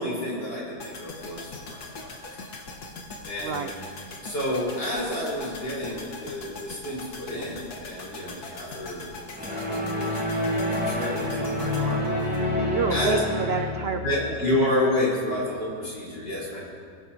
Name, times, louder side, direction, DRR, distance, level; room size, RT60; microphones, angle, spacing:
voice 1, 0.0-2.1 2.4-2.5 3.3-3.8 4.2-12.1 12.9-13.2 14.0-16.6, left 1 dB, 90° left, -6 dB, 5.2 m, -30 dB
sound 1, 0.8-13.0 13.2-13.3, left 3 dB, 65° left, 1.9 m, -41 dB
voice 2, 3.4-3.7 12.6-14.0, right 5 dB, 90° right, 6 dB, 0.5 m, -28 dB
sound 2, 9.4-14.0, left 1 dB, 5° right, 2.8 m, -27 dB
22.0 x 15.5 x 2.9 m, 2.2 s
omnidirectional pair, 1.8 m